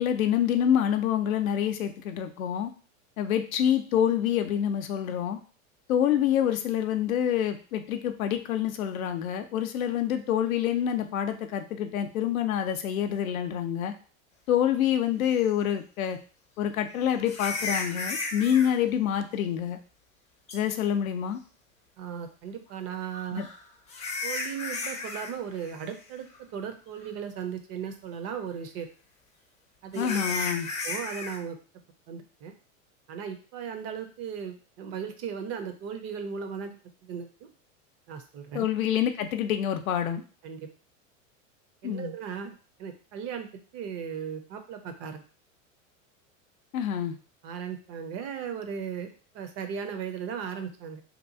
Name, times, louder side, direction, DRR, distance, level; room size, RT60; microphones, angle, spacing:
voice 1, 0.0-2.7 3.2-5.4 5.9-13.9 14.5-16.2 16.6-19.8 20.5-21.4 23.3-23.5 30.0-30.7 38.5-40.2 41.8-42.1 46.7-47.1, left 9 dB, 90° left, 7 dB, 0.5 m, -27 dB
sound 1, 15.4-15.5 17.3-18.7 20.5-20.6 23.1-25.3 25.6-25.9 26.3-26.4 27.0-27.1 29.9-31.4, left 3 dB, 15° left, 0.5 m, -34 dB
voice 2, 22.0-23.4 24.2-28.9 29.8-30.4 30.8-31.6 32.1-32.5 33.1-36.7 37.0-37.5 38.1-38.6 40.4-40.7 41.8-43.5 43.7-45.2 47.4-51.0, right 7 dB, 40° right, 7 dB, 0.5 m, -37 dB
2.8 x 2.3 x 2.6 m, 0.38 s
hypercardioid pair, 100°, 40 cm